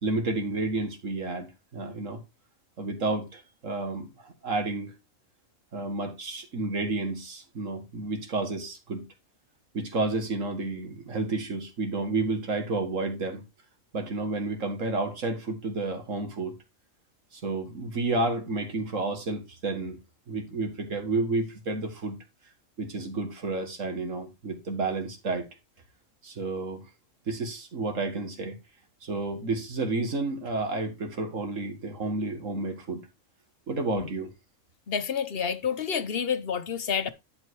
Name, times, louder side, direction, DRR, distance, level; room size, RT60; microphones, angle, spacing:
voice 1, 0.0-2.2 2.8-4.9 5.7-9.0 9.7-13.4 13.9-16.5 17.3-20.0 20.3-22.2 22.8-25.5 26.2-26.9 27.3-28.6 29.0-33.0 33.7-34.3, right 3 dB, 75° right, 2.2 m, -31 dB
voice 2, 34.9-37.1, left 7 dB, 50° left, 1.1 m, -29 dB
10.5 x 4.4 x 4.7 m
omnidirectional pair, 1.3 m